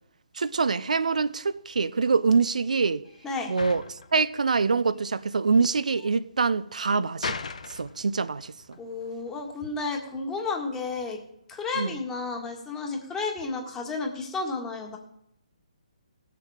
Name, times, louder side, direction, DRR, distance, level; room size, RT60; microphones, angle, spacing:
voice 1, 0.3-3.0 3.5-7.4 7.7-8.8 11.8-11.9, right 4 dB, 80° right, 0.6 m, -25 dB
sound 1, 0.8-12.6, left 5 dB, 70° left, 1.0 m, -42 dB
voice 2, 8.8-11.2 11.5-15.0, left 4 dB, 10° left, 1.7 m, -32 dB
17.5 x 6.8 x 4.9 m
hypercardioid pair, 155°, 4 cm